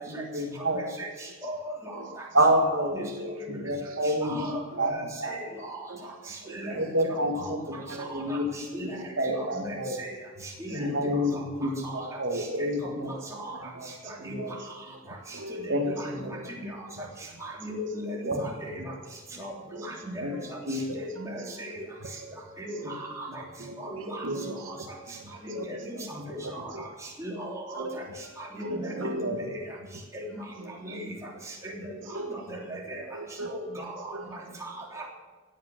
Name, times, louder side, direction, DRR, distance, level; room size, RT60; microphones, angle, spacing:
voice 1, 0.1-0.8 2.3-3.0 3.6-5.5 6.3-6.4 6.7-8.4 9.2-9.9 10.7-13.1 13.5-14.5 15.7-15.9 16.2-16.4 18.3-18.4 18.8-18.9 20.2-20.3 20.7-20.8 28.8-29.4, right 1 dB, 55° right, 2 dB, 2.1 m, -28 dB
voice 2, 0.7-2.3 2.5-3.6 4.0-5.8 6.5-6.8 7.0-7.5 8.1-8.9 9.2-10.1 10.4-11.4 11.8-12.0 12.4-13.6 14.2-14.4 15.6-16.1 16.6-16.9 17.4-18.9 19.4-20.2 20.7-21.8 22.6-23.4 23.8-24.3 24.7-24.8 25.4-26.1 26.5-26.9 27.2-28.0 28.4-29.6 30.1-30.2 30.8-31.1 31.5-32.0 32.3-33.2 33.5-35.1, right 1 dB, 15° right, -2 dB, 3.2 m, -38 dB
voice 3, 3.0-3.6 4.7-4.8 5.9-6.0 6.5-6.9 7.9-8.1 8.7-8.8 11.0-11.1 15.3-15.7 16.2-16.4 17.0-17.1 19.7-19.9 20.3-20.4 21.4-21.5 22.2-22.9 23.6-23.9 24.2-24.6 25.2-25.3 25.5-25.6 26.0-26.1 27.7-28.0 28.6-29.3 30.6-30.7 32.1-32.4 32.9-33.5 34.1-34.2, right 2 dB, 70° right, 5 dB, 1.5 m, -38 dB
16.5 x 8.9 x 7.8 m, 1.4 s
head